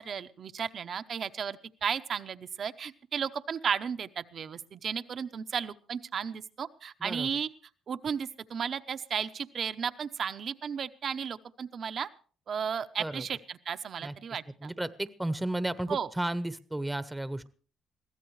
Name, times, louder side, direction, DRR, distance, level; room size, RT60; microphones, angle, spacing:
voice 1, 0.0-7.5 7.9-12.1 12.5-14.7 15.9-16.1, right 7 dB, 55° right, 11 dB, 0.8 m, -34 dB
voice 2, 14.6-17.5, right 1 dB, 10° right, 14 dB, 0.9 m, -33 dB
22.0 x 15.5 x 3.2 m, 0.41 s
cardioid pair, 90°, 0 cm